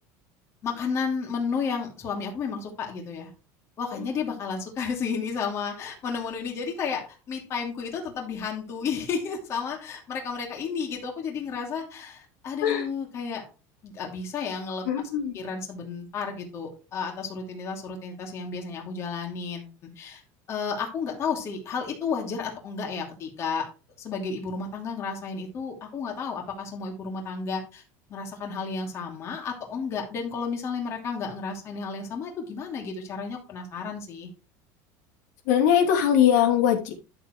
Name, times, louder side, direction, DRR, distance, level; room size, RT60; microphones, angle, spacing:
voice 1, 0.6-3.3 3.8-13.4 13.8-14.9 15.3-19.7 20.0-20.2 20.5-23.6 24.0-27.8 28.1-34.3, left 5 dB, 30° left, 0 dB, 2.7 m, -32 dB
voice 2, 14.8-15.4 35.4-36.9, left 9 dB, 80° left, 1 dB, 2.8 m, -22 dB
11.5 x 7.1 x 3.1 m, 0.32 s
cardioid pair, 165°, 9 cm